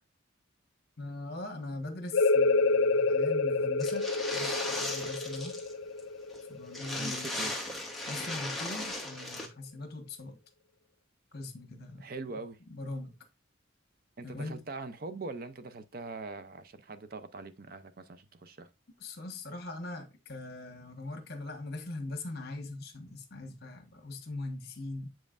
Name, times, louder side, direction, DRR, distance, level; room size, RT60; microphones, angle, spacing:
voice 1, 1.0-4.1 4.3-5.6 6.5-7.5 8.1-10.4 11.3-12.0 12.3-12.4 12.7-13.2 14.2-14.6 19.0-25.1, left 2 dB, 50° left, 1.3 m, -41 dB
sound 1, 2.1-7.5, left 3 dB, 80° left, 0.7 m, -28 dB
sound 2, 3.8-5.7 6.0-6.1 6.3-6.4 6.7-9.5, left 1 dB, ahead, 1.0 m, -37 dB
voice 2, 6.9-7.5 12.0-12.6 14.2-18.7, right 3 dB, 45° right, 0.5 m, -42 dB
7.3 x 5.3 x 2.5 m
head